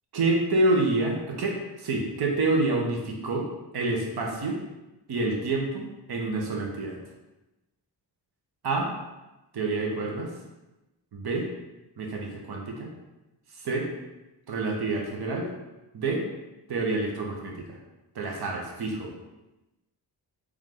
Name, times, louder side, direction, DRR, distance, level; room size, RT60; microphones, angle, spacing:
voice 1, 0.1-3.5 3.7-4.6 5.1-7.0 8.6-8.9 9.5-10.3 11.1-11.5 12.0-12.9 13.5-13.9 14.5-15.5 15.9-16.2 16.7-17.8 18.1-19.1, right 2 dB, 65° right, 0 dB, 1.0 m, -27 dB
3.6 x 3.2 x 3.7 m, 1.0 s
cardioid pair, 80°, 41 cm